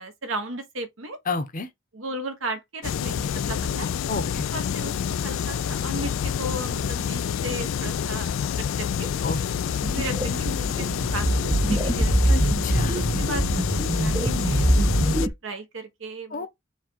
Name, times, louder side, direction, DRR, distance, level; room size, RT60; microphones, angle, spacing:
voice 1, 0.0-1.2 1.9-3.9 4.5-9.1 9.9-11.4 11.7-12.5 12.9-13.7 13.9-14.6 15.0-16.5, right 2 dB, 65° right, 1.1 m, -35 dB
voice 2, 1.3-1.7 4.1-4.4 9.2-9.4 12.3-13.0 16.3-16.5, left 3 dB, 40° left, 0.8 m, -30 dB
sound 1, 2.8-15.3, left 8 dB, 70° left, 0.3 m, -28 dB
sound 2, 9.5-15.3, right 1 dB, 15° right, 0.5 m, -24 dB
4.6 x 2.3 x 4.4 m
head